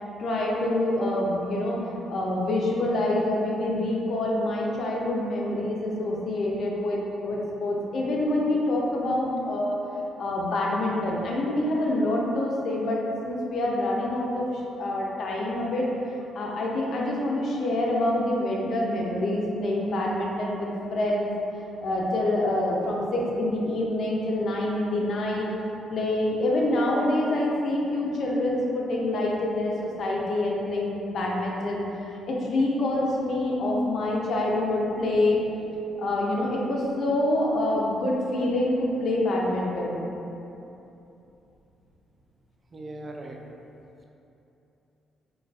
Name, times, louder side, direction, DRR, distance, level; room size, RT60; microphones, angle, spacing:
voice 1, 0.2-1.8 2.1-9.8 10.2-15.9 16.3-21.3 21.8-25.5 25.9-31.9 32.3-35.4 36.0-40.0, left 1 dB, 60° left, -3 dB, 0.5 m, -26 dB
voice 2, 42.7-43.4, right 2 dB, 35° right, 0 dB, 0.3 m, -40 dB
3.9 x 2.3 x 2.3 m, 2.9 s
cardioid pair, 90°, 0 cm